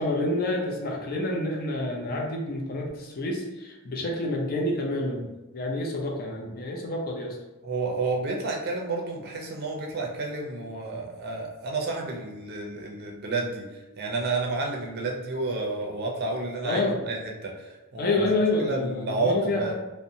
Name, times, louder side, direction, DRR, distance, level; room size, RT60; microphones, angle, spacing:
voice 1, 0.0-7.4 16.6-17.0 18.0-19.7, left 2 dB, 40° left, 0 dB, 0.5 m, -28 dB
voice 2, 7.6-18.2 18.6-19.7, right 3 dB, 45° right, 0 dB, 0.5 m, -30 dB
2.7 x 2.1 x 2.6 m, 1.1 s
head